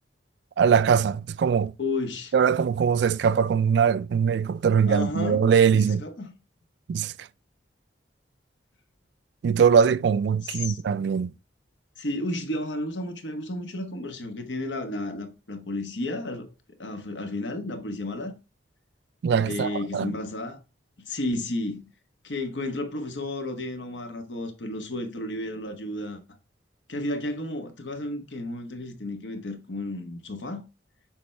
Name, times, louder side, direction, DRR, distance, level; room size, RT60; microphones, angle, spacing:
voice 1, 0.6-1.7 2.3-6.0 6.9-7.3 9.4-11.3 19.2-20.1, right 7 dB, 65° right, 0.3 m, -22 dB
voice 2, 1.8-2.3 4.9-5.4 5.7-6.3 10.4-10.8 12.0-16.5 16.8-18.3 19.4-20.6 21.0-21.9 22.2-26.2 26.9-30.6, left 2 dB, 80° left, 1.2 m, -32 dB
6.9 x 4.4 x 3.3 m
head